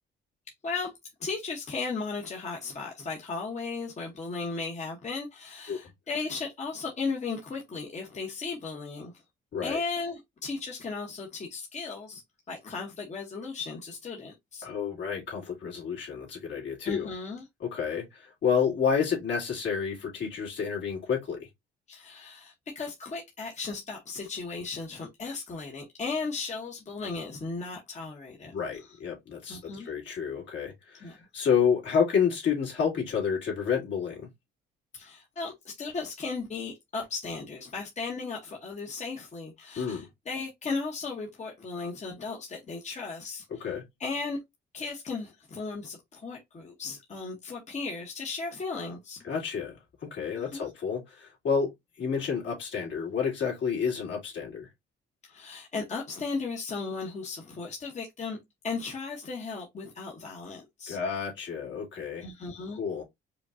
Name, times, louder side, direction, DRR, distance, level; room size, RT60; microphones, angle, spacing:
voice 1, 1.2-9.1 9.6-12.2 12.5-14.7 16.8-17.4 21.9-28.5 28.8-29.0 29.5-29.9 31.0-31.2 34.9-43.7 44.0-44.4 44.7-49.2 50.4-50.7 55.2-58.4 58.6-61.0 62.2-62.8, left 4 dB, 35° left, 1.0 m, -36 dB
voice 2, 14.6-17.1 17.6-21.5 28.4-34.3 39.8-40.1 43.6-43.8 49.2-49.7 50.0-51.7 52.0-54.7 60.9-62.3 62.8-63.0, left 6 dB, 70° left, 2.2 m, -29 dB
5.0 x 2.3 x 2.6 m
cardioid pair, 90°, 20 cm